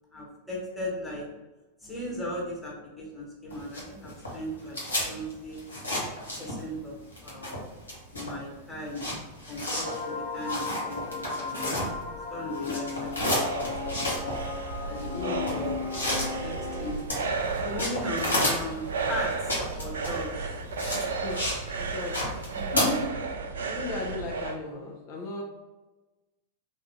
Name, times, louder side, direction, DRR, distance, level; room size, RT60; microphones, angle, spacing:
voice 1, 0.1-1.3 1.8-5.6 6.4-7.6 8.1-9.1 9.5-11.8 12.3-13.3 13.5-13.7 14.8-15.8 16.4-17.0 17.6-20.6 22.5-23.1, left 1 dB, ahead, -5 dB, 1.4 m, -37 dB
sound 1, 3.5-6.8 7.1-12.2 12.5-21.6 21.9-22.8, left 1 dB, 80° left, 1.2 m, -32 dB
sound 2, 9.8-17.0, left 4 dB, 60° left, 0.9 m, -35 dB
sound 3, 12.7-24.6, right 4 dB, 65° right, 0.4 m, -34 dB
voice 2, 15.1-15.7 21.2-21.5 21.8-22.2 23.7-25.4, left 3 dB, 45° left, -2 dB, 0.6 m, -36 dB
3.7 x 2.5 x 3.5 m, 1.1 s
figure-of-eight pair, 95°, 0 cm